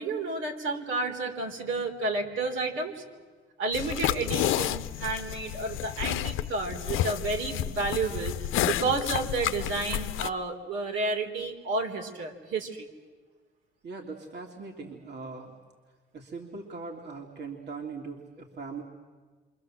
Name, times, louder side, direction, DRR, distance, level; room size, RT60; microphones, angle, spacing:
voice 1, 0.0-3.0 3.6-12.9, right 3 dB, 75° right, 2 dB, 4.0 m, -31 dB
sound 1, 3.7-10.3, left 12 dB, 90° left, 0.7 m, -30 dB
voice 2, 13.8-15.5 16.1-18.8, right 4 dB, 60° right, 1 dB, 3.2 m, -40 dB
28.5 x 25.0 x 7.7 m, 1.4 s
cardioid pair, 90°, 20 cm